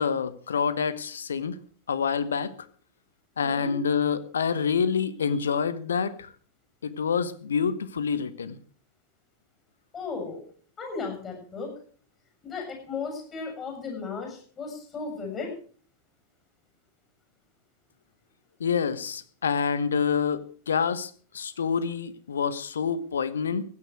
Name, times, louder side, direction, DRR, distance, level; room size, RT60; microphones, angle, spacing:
voice 1, 0.0-1.6 1.9-2.5 3.4-6.3 6.8-8.6 18.6-23.6, left 6 dB, 70° left, 15 dB, 1.1 m, -27 dB
voice 2, 3.4-3.7 9.9-10.4 10.8-11.7 12.4-15.5, left 4 dB, 25° left, 3 dB, 7.2 m, -35 dB
16.0 x 9.7 x 6.2 m, 0.43 s
figure-of-eight pair, 90°, 0 cm